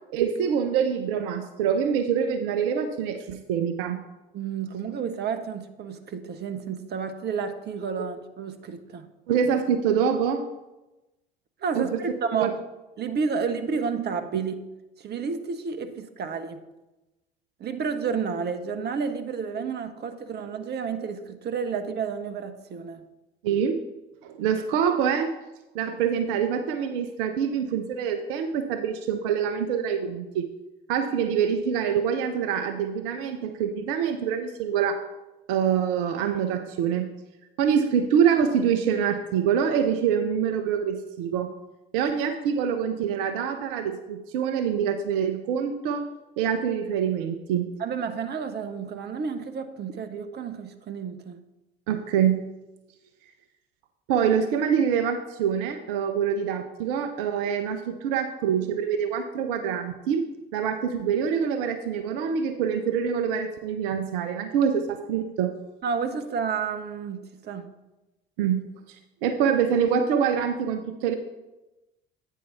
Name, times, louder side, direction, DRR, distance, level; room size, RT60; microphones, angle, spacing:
voice 1, 0.1-4.0 8.0-8.1 9.3-10.4 11.7-11.9 12.4-12.5 23.4-23.8 24.2-25.3 25.7-30.5 30.9-35.0 35.5-37.1 37.6-41.5 41.9-46.0 46.4-47.7 51.9-52.4 54.1-60.2 60.5-65.6 68.4-68.6 69.2-71.1, right 7 dB, 65° right, 7 dB, 0.6 m, -25 dB
voice 2, 4.3-9.1 11.6-12.6 13.0-14.6 15.0-16.6 17.6-23.0 47.8-51.4 65.8-67.7, right 6 dB, 35° right, 8 dB, 0.8 m, -31 dB
8.7 x 4.6 x 5.6 m, 1.0 s
figure-of-eight pair, 55°, 29 cm